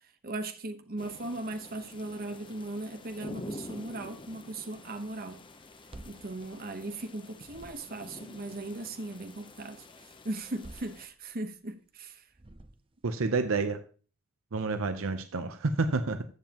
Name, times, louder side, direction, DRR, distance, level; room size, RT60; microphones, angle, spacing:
voice 1, 0.2-5.4 6.0-9.8 10.2-12.2, right 2 dB, 45° right, 1.0 m, -38 dB
sound 1, 1.0-11.1, left 2 dB, 25° left, 0.7 m, -48 dB
sound 2, 5.6-7.1 7.4-8.2 10.3-11.6 12.3-13.1, right 1 dB, 25° right, 0.6 m, -51 dB
voice 2, 13.0-13.8 14.5-16.2, right 3 dB, 75° right, 0.7 m, -29 dB
14.5 x 7.5 x 3.0 m
head